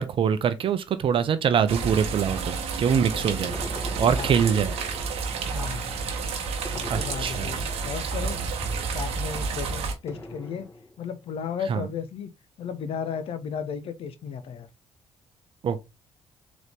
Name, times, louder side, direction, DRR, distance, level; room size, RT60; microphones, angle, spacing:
voice 1, 0.0-3.5 4.0-4.7 6.9-7.6 11.7-11.9 15.6-15.8, right 7 dB, 55° right, 0.6 m, -24 dB
sound 1, 1.7-9.9, right 5 dB, 70° right, 1.0 m, -30 dB
voice 2, 2.9-3.5 4.1-4.3 5.5-6.0 6.7-8.4 8.9-10.7 11.0-12.3 12.6-14.7, left 7 dB, 60° left, 0.7 m, -34 dB
sound 2, 3.4-5.4 6.6-7.8 10.1-11.1, left 2 dB, 25° left, 1.3 m, -41 dB
3.9 x 3.1 x 3.4 m
hypercardioid pair, 50°, 11 cm